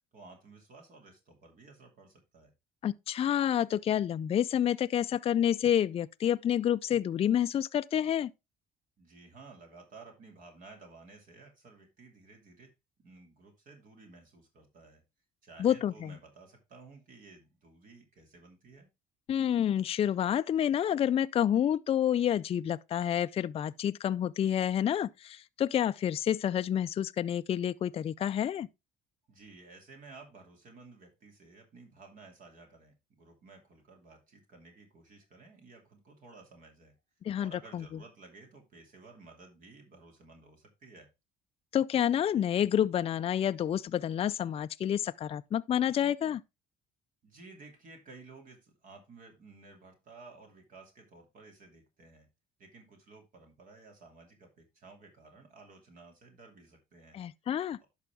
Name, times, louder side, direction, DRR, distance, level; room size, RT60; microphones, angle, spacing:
voice 1, 0.1-2.5 9.0-12.7 13.0-15.0 15.4-18.9 29.3-36.9 37.4-41.1 47.2-52.3 52.6-57.2 57.8-57.9, right 3 dB, 55° right, 2.8 m, -54 dB
voice 2, 2.8-8.3 15.6-16.1 19.3-28.7 37.2-37.8 41.7-46.4 57.1-57.8, left 10 dB, 35° left, 0.4 m, -29 dB
11.0 x 5.7 x 3.6 m
cardioid pair, 110°, 17 cm